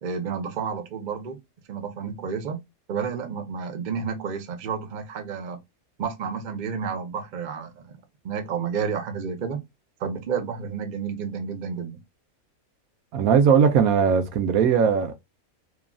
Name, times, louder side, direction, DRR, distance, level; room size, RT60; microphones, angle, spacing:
voice 1, 0.0-1.4 1.7-2.6 2.9-5.6 6.0-8.0 8.2-9.6 10.0-12.0, right 6 dB, 50° right, 0.5 m, -30 dB
voice 2, 13.1-15.1, right 7 dB, 80° right, 1.1 m, -19 dB
3.1 x 2.4 x 2.2 m
omnidirectional pair, 1.5 m